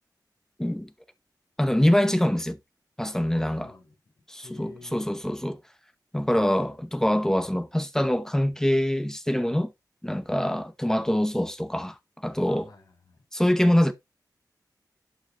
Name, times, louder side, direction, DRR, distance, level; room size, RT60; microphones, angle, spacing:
voice 1, 0.6-0.9 1.6-2.6 3.0-3.7 4.3-5.6 6.1-9.7 10.0-11.9 12.2-12.7 13.3-13.9, left 1 dB, 5° left, 0.7 m, -24 dB
voice 2, 3.3-5.0 12.5-13.2, left 3 dB, 65° left, 3.4 m, -49 dB
11.0 x 5.7 x 2.5 m
wide cardioid pair, 115°, 7 cm